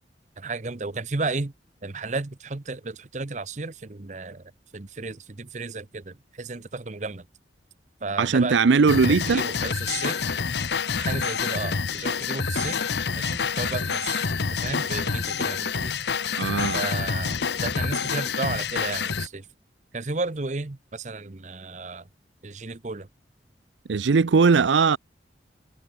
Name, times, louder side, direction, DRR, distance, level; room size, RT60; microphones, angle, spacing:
voice 1, 0.4-1.5 1.8-4.4 4.7-7.3 8.0-8.6 9.0-10.2 11.0-12.8 13.2-16.0 16.7-19.5 19.9-22.1 22.4-23.1, right 3 dB, 40° right, 0.8 m, -33 dB
voice 2, 8.2-9.4 16.4-16.8 23.9-25.0, right 5 dB, 90° right, 0.5 m, -19 dB
sound 1, 8.9-19.3, left 5 dB, 70° left, 0.8 m, -27 dB
head